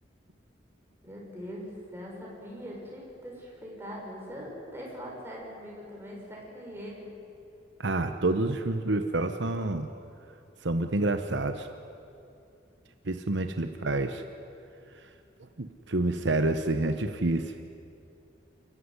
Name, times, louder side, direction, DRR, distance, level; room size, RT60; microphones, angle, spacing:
voice 1, 1.0-7.1, equal, 10° right, -3 dB, 6.1 m, -42 dB
voice 2, 7.8-9.9 10.6-11.7 13.0-14.2 15.6-17.5, right 2 dB, 70° right, 8 dB, 1.0 m, -28 dB
29.0 x 14.5 x 9.9 m, 2.6 s
head